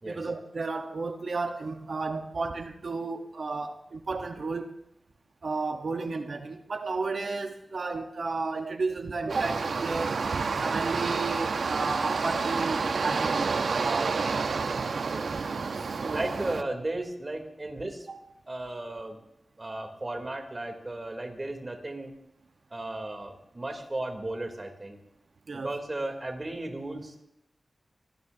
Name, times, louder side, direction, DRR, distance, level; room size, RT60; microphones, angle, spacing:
voice 1, 0.0-4.7 5.4-14.8 15.3-15.4 15.7-16.3 18.1-18.2 25.5-25.7, right 3 dB, 65° right, 5 dB, 1.2 m, -33 dB
sound 1, 9.3-16.6, right 4 dB, 80° right, 0.9 m, -29 dB
voice 2, 15.1-15.4 16.1-18.1 18.5-19.2 19.6-22.1 22.7-25.0 25.5-27.2, right 2 dB, 30° right, 3 dB, 3.4 m, -35 dB
25.0 x 19.5 x 2.9 m, 0.81 s
wide cardioid pair, 105°, 0 cm